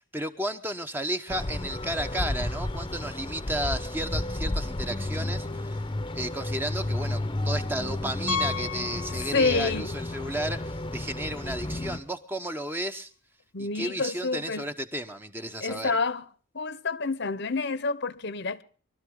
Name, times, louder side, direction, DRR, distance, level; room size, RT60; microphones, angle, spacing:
voice 1, 0.0-5.8 6.1-13.1 13.6-15.9, right 1 dB, 10° right, 0.9 m, -33 dB
sound 1, 1.3-12.0, left 1 dB, 25° left, 0.9 m, -32 dB
Piano, 8.3-9.9 10.1-10.3 10.9-11.0 11.2-11.3 13.4-13.5, left 6 dB, 80° left, 0.7 m, -34 dB
voice 2, 9.2-9.9 13.5-14.7 15.6-16.3 16.5-18.6, left 4 dB, 55° left, 0.9 m, -28 dB
24.0 x 13.0 x 3.7 m
head